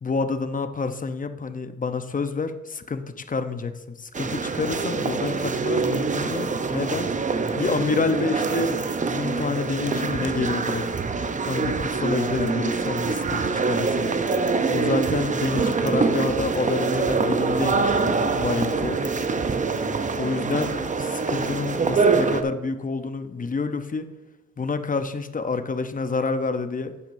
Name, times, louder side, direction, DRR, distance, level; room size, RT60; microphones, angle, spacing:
voice 1, 0.0-7.1 7.5-10.9 11.5-14.1 14.7-19.0 20.2-24.1 24.6-26.9, left 4 dB, 25° left, 9 dB, 0.8 m, -28 dB
sound 1, 4.1-22.4, right 4 dB, 25° right, 0.6 m, -25 dB
12.0 x 8.7 x 2.7 m, 1.1 s
cardioid pair, 90°, 30 cm